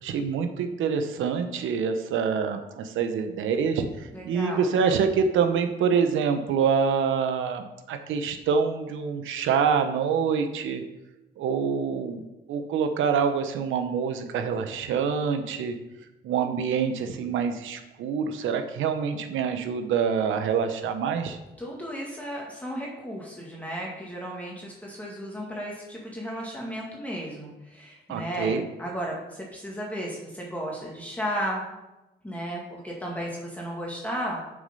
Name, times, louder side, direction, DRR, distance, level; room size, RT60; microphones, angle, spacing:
voice 1, 0.0-3.9 4.3-10.8 11.4-12.2 12.5-15.7 16.2-21.4 28.1-28.6, right 6 dB, 80° right, 8 dB, 0.9 m, -26 dB
voice 2, 4.1-4.7 21.6-28.5 28.8-31.6 32.2-34.4, equal, 5° left, -3 dB, 2.0 m, -34 dB
7.2 x 6.7 x 5.4 m, 1.0 s
cardioid pair, 90°, 20 cm